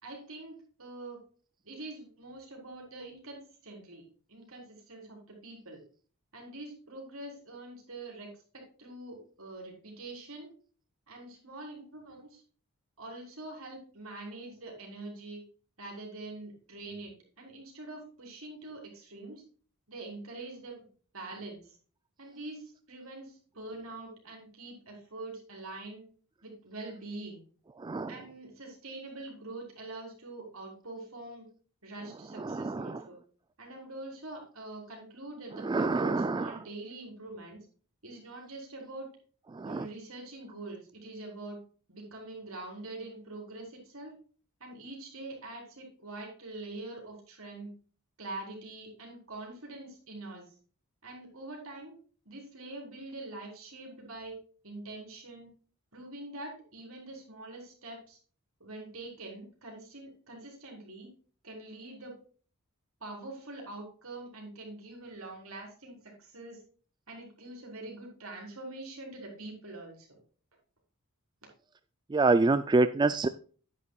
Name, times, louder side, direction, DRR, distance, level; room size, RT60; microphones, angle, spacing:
voice 1, 0.0-1.2 1.6-4.0 4.3-5.8 6.3-10.5 11.1-12.4 13.0-15.4 15.8-19.4 19.9-20.9 21.1-21.8 22.2-26.0 26.4-27.4 28.1-31.5 31.8-33.2 33.6-37.6 38.0-39.1 39.6-41.6 41.9-44.2 44.6-47.7 48.2-50.5 51.0-51.9 52.3-54.4 54.6-55.5 55.9-58.2 58.6-61.1 61.4-62.1 63.0-66.6 67.1-70.2, right 2 dB, 70° right, 0 dB, 4.1 m, -44 dB
voice 2, 27.8-28.2 32.4-33.0 35.5-36.6 39.5-39.9 72.1-73.3, right 3 dB, 20° right, 12 dB, 0.3 m, -27 dB
9.6 x 9.5 x 2.3 m, 0.40 s
head